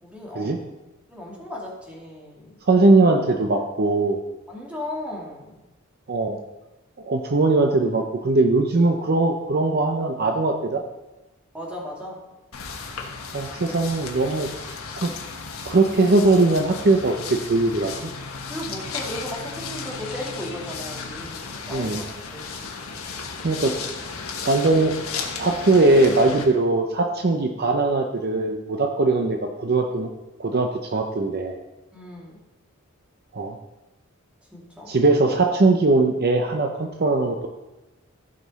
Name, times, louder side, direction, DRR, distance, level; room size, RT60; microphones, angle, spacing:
voice 1, 0.0-0.5 1.1-2.6 4.5-5.6 11.5-12.2 18.5-22.4 31.9-32.4 34.5-34.9, left 1 dB, 5° right, -3 dB, 2.2 m, -36 dB
voice 2, 2.7-4.2 6.1-6.4 7.0-10.8 13.3-15.1 15.7-18.1 21.7-22.0 23.4-23.7 24.4-24.9 25.4-30.1 30.4-31.6 33.3-33.6 34.9-37.4, right 2 dB, 50° right, 4 dB, 0.7 m, -20 dB
sound 1, 12.5-26.5, left 5 dB, 85° left, 1.4 m, -34 dB
15.0 x 5.3 x 4.1 m, 1.0 s
head